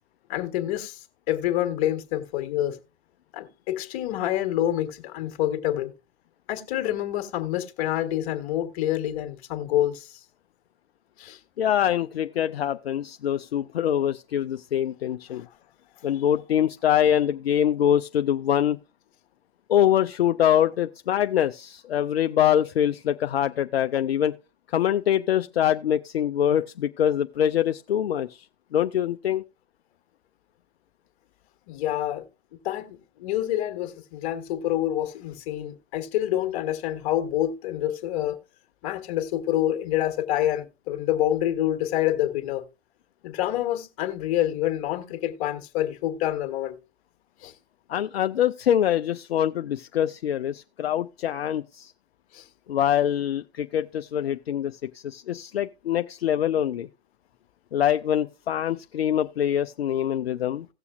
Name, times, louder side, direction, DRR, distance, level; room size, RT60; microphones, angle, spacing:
voice 1, 0.3-2.8 3.3-5.9 6.5-10.2 11.2-11.4 31.7-32.3 32.6-38.4 38.8-42.6 43.2-46.8 47.4-47.5 52.3-52.5, left 13 dB, 30° left, 1.4 m, -27 dB
voice 2, 11.6-15.5 16.0-18.8 19.7-24.3 24.7-28.5 28.7-29.4 47.9-51.9 52.7-56.9 57.7-60.7, left 10 dB, 65° left, 0.5 m, -24 dB
17.0 x 6.9 x 2.3 m
figure-of-eight pair, 125°, 34 cm